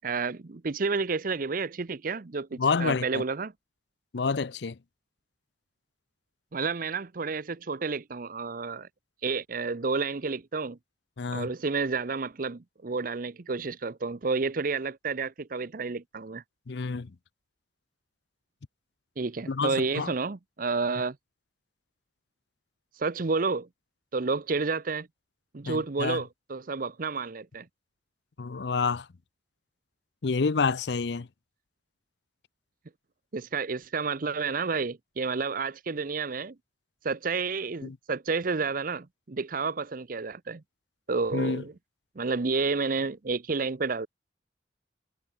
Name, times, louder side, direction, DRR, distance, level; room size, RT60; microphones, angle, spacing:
voice 1, 0.0-3.5 6.5-8.9 9.2-10.8 11.3-16.4 19.2-21.2 22.9-23.7 24.1-25.1 25.5-27.7 33.3-36.5 37.0-40.6 41.1-41.7 42.2-44.1, right 4 dB, 50° right, 0.7 m, -30 dB
voice 2, 2.6-3.2 4.1-4.8 11.2-11.5 16.7-17.1 19.5-20.1 25.7-26.2 28.4-29.1 30.2-31.3 37.8-38.0 41.3-41.6, left 4 dB, 65° left, 0.6 m, -28 dB
head